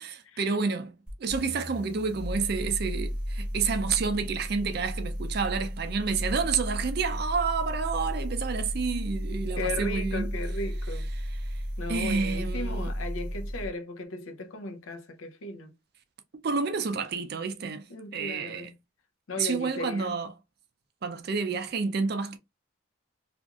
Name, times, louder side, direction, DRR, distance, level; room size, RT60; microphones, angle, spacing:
voice 1, 0.0-10.3 11.1-11.6 11.9-12.9 16.4-17.9 18.1-18.7 19.4-20.3 21.0-22.4, right 5 dB, 50° right, 0.4 m, -29 dB
sound 1, 1.1-13.7, equal, 5° right, 0.8 m, -34 dB
voice 2, 9.6-11.1 11.8-15.7 17.9-18.7 19.3-20.1, left 2 dB, 80° left, 0.6 m, -36 dB
2.8 x 2.5 x 2.3 m
head